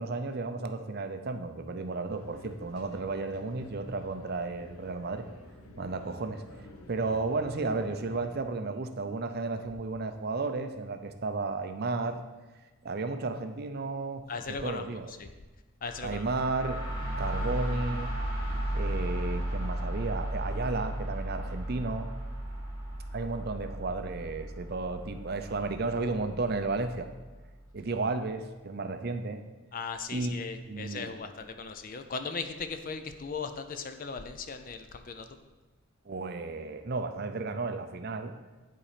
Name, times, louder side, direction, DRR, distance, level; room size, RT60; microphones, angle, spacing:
voice 1, 0.0-5.2 5.8-6.4 6.9-12.2 12.8-15.1 16.0-16.8 17.2-18.1 18.7-22.1 23.1-27.1 27.7-29.4 30.1-31.1 36.1-38.3, right 3 dB, 45° right, 8 dB, 0.5 m, -33 dB
sound 1, 2.1-8.4, left 2 dB, 85° left, 0.8 m, -50 dB
voice 2, 14.3-15.3 15.8-16.2 29.7-35.3, left 5 dB, 40° left, 9 dB, 0.5 m, -38 dB
sound 2, 15.8-27.5, right 1 dB, 20° left, 1.6 m, -35 dB
10.0 x 4.2 x 5.0 m, 1.2 s
head